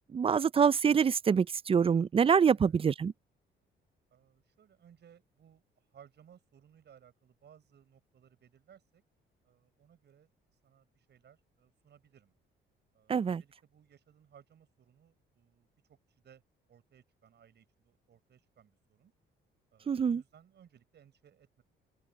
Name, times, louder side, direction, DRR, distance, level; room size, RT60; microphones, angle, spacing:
voice 1, 0.0-3.1 13.1-13.4 19.9-20.2, right 6 dB, 30° right, 0.4 m, -26 dB
voice 2, 4.1-5.6 5.9-9.0 9.4-10.3 10.6-12.3 12.9-16.0 16.2-16.4 16.7-19.1 19.7-21.6, right 9 dB, 60° right, 6.3 m, -61 dB
open air
cardioid pair, 90°, 20 cm